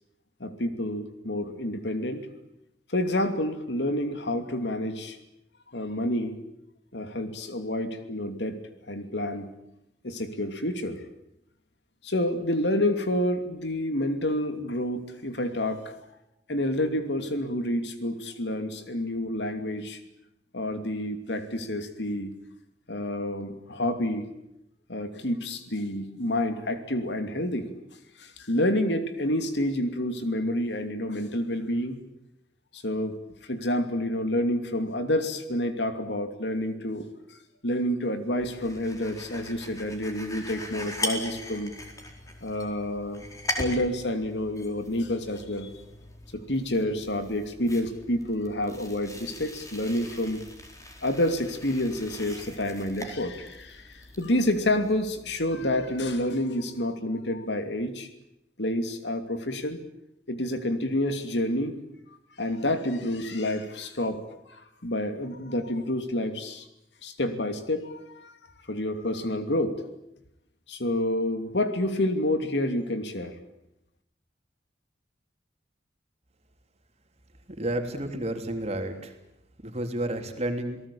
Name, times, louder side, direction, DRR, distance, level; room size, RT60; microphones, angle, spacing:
voice 1, 0.4-2.3 2.9-5.2 5.7-6.4 6.9-8.6 8.9-9.5 10.0-11.0 12.0-15.8 16.5-20.0 20.5-22.3 22.9-24.3 24.9-27.7 28.2-32.0 32.7-37.1 37.6-41.8 42.4-43.2 43.6-45.7 46.3-50.4 51.0-58.1 58.6-59.8 60.3-61.8 62.4-66.7 67.0-68.3 68.7-69.8 70.7-73.4, left 1 dB, 75° left, 8 dB, 2.8 m, -29 dB
sound 1, 38.4-56.3, left 1 dB, 20° left, 4.4 m, -40 dB
voice 2, 77.6-79.1 79.6-80.8, right 1 dB, 35° right, 5 dB, 3.3 m, -31 dB
28.5 x 18.5 x 8.7 m, 0.85 s
head